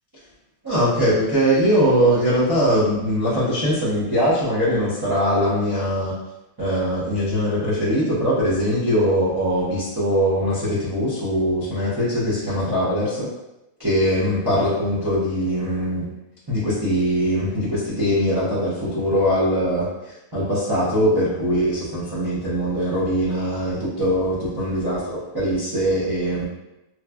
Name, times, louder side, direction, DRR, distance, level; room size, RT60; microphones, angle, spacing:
voice 1, 0.6-6.1 6.6-13.3 13.8-16.1 16.5-26.5, equal, 35° right, -11 dB, 0.3 m, -21 dB
3.1 x 2.2 x 2.3 m, 0.94 s
omnidirectional pair, 1.7 m